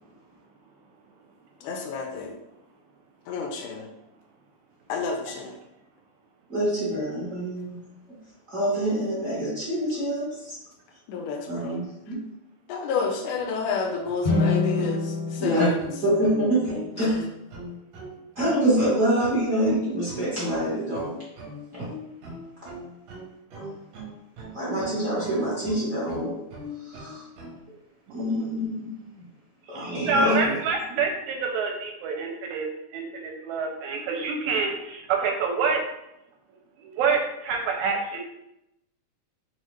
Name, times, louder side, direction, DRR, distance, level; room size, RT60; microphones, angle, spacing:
voice 1, 1.6-2.3 3.3-3.9 4.9-5.6 11.1-11.8 12.1-12.2 12.7-15.8 17.0-17.1, left 5 dB, 85° left, 3 dB, 2.0 m, -30 dB
voice 2, 6.5-7.7 8.1-8.2 8.5-10.6 11.5-12.2 15.4-15.7 16.0-17.2 18.3-21.1 23.7-23.8 24.5-26.4 26.8-27.2 28.1-29.0 29.7-30.5, equal, 45° right, -9 dB, 1.0 m, -26 dB
sound 1, 14.2-17.5, left 3 dB, 70° left, 1.3 m, -28 dB
sound 2, 15.8-27.6, equal, 65° right, 1.8 m, -40 dB
voice 3, 29.7-35.8 36.8-38.2, right 4 dB, 80° right, 2 dB, 1.9 m, -27 dB
5.6 x 2.4 x 3.1 m, 0.84 s
omnidirectional pair, 3.6 m